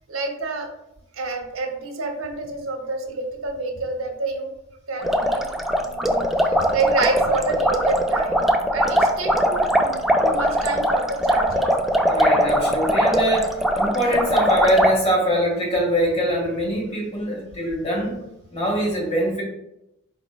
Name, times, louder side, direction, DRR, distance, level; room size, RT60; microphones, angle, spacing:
voice 1, 0.1-0.7 1.1-4.5 4.9-5.6 5.8-8.5 8.7-11.7, right 3 dB, 80° right, 3 dB, 0.8 m, -28 dB
sound 1, 5.0-14.9, equal, ahead, 0.3 m, -20 dB
voice 2, 12.1-18.2 18.5-19.4, equal, 30° left, -3 dB, 1.6 m, -23 dB
5.0 x 4.5 x 2.3 m, 0.86 s
head